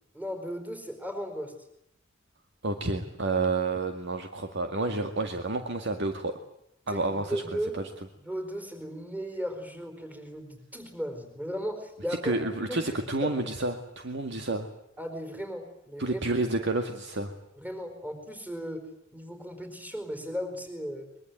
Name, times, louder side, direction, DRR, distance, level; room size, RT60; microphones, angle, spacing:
voice 1, 0.1-1.5 6.9-7.8 8.2-12.4 12.7-12.8 13.2-13.3 15.0-16.2 17.6-18.8 19.1-21.1, equal, 10° right, 6 dB, 4.7 m, -36 dB
voice 2, 2.6-6.4 6.9-7.4 7.7-7.8 12.2-14.7 16.0-17.3, right 2 dB, 60° right, 6 dB, 2.1 m, -29 dB
24.0 x 23.0 x 9.3 m, 0.76 s
head